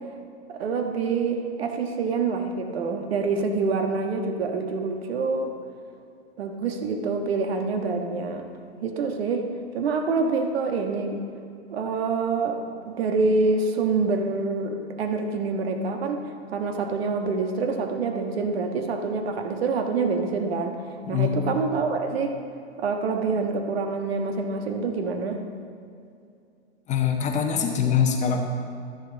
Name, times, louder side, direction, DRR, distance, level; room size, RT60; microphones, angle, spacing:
voice 1, 0.5-5.5 6.4-8.4 8.8-9.5 9.7-11.2 11.7-12.6 12.8-16.2 16.5-20.8 21.1-22.4 22.8-25.4, right 4 dB, 60° right, 4 dB, 1.4 m, -26 dB
voice 2, 21.0-21.4 26.9-28.4, left 7 dB, 20° left, 2 dB, 1.3 m, -23 dB
12.0 x 10.5 x 4.1 m, 2.4 s
figure-of-eight pair, 110°, 34 cm